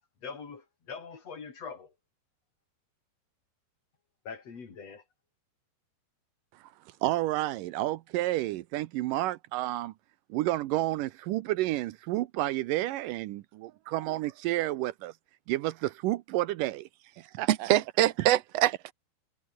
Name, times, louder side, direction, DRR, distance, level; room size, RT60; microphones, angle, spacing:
voice 1, 0.2-1.9 4.2-5.0, left 5 dB, 40° left, 4.5 m, -43 dB
voice 2, 7.0-9.9 10.3-15.1 15.5-16.9 17.2-17.7, right 16 dB, 90° right, 1.8 m, -30 dB
voice 3, 17.5-18.9, right 13 dB, 70° right, 1.5 m, -24 dB
omnidirectional pair, 4.9 m